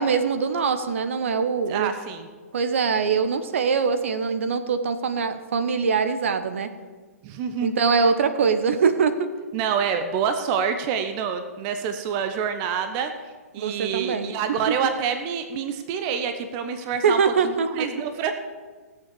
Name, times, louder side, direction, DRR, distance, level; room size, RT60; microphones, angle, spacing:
voice 1, 0.0-1.9 2.5-6.7 7.6-9.3 13.6-14.3 14.7-14.8 17.0-17.9, right 5 dB, 55° right, 10 dB, 1.1 m, -23 dB
voice 2, 1.7-2.3 7.2-7.7 9.5-13.1 13.5-18.3, right 7 dB, 30° right, 8 dB, 0.9 m, -27 dB
16.0 x 7.7 x 7.0 m, 1.4 s
figure-of-eight pair, 120°, 8 cm